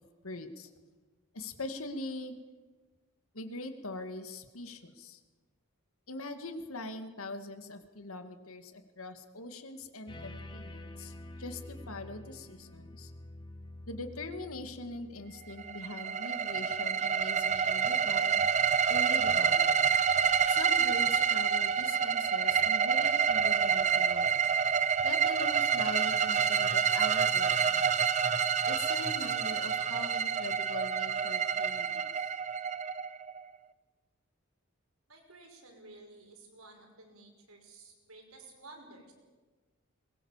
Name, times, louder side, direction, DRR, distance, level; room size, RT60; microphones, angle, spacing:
voice 1, 0.2-0.7 1.3-2.3 3.3-5.2 6.1-13.1 13.9-18.4 18.9-19.8 20.5-24.3 25.0-27.9 28.7-32.1, left 2 dB, 80° left, 8 dB, 2.2 m, -42 dB
sound 1, 10.1-15.7, left 1 dB, 20° left, 1.7 m, -47 dB
sound 2, 15.6-33.4, right 7 dB, 35° right, 0.7 m, -28 dB
voice 2, 35.1-39.1, right 2 dB, 85° right, 2 dB, 5.6 m, -53 dB
22.5 x 20.5 x 7.4 m, 1.3 s
head